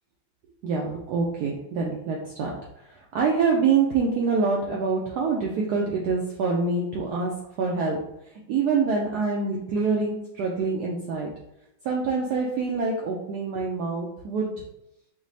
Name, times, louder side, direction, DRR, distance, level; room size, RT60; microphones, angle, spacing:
voice 1, 0.6-2.5 3.1-7.3 7.6-8.0 8.5-11.3 11.8-14.5, right 4 dB, 90° right, -1 dB, 0.8 m, -25 dB
5.0 x 2.0 x 2.6 m, 0.85 s
omnidirectional pair, 2.2 m